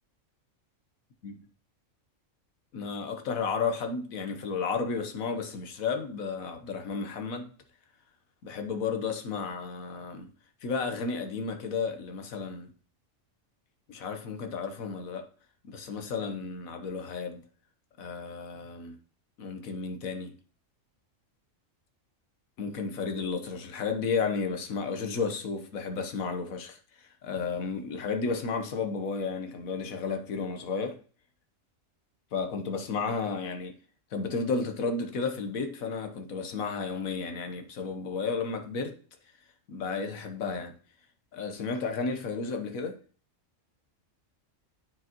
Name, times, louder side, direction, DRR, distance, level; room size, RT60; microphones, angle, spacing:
voice 1, 2.7-7.5 8.4-10.3 10.6-12.7 13.9-15.3 15.7-17.4 18.0-19.0 19.4-20.4 22.6-31.0 32.3-33.8 34.1-39.0 39.7-40.7 41.3-43.0, left 5 dB, 90° left, 1.5 m, -33 dB
9.4 x 4.9 x 3.0 m
omnidirectional pair, 1.4 m